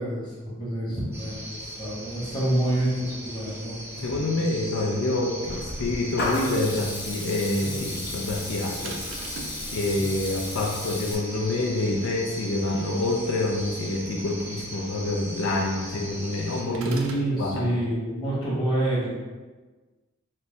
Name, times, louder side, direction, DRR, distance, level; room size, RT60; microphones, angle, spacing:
voice 1, 0.0-4.4 16.7-19.1, right 1 dB, 25° left, -8 dB, 1.3 m, -28 dB
sound 1, 1.1-16.6, right 1 dB, 15° right, 0.6 m, -39 dB
voice 2, 4.0-9.0 9.7-16.9 17.4-17.7, left 2 dB, 75° left, 0 dB, 0.4 m, -27 dB
Water tap faucet / Liquid, 5.4-11.1, left 2 dB, 55° left, 0.8 m, -34 dB
sound 2, 8.8-9.6 16.7-17.3, right 2 dB, 75° right, 0.5 m, -38 dB
4.3 x 2.1 x 3.9 m, 1.3 s
head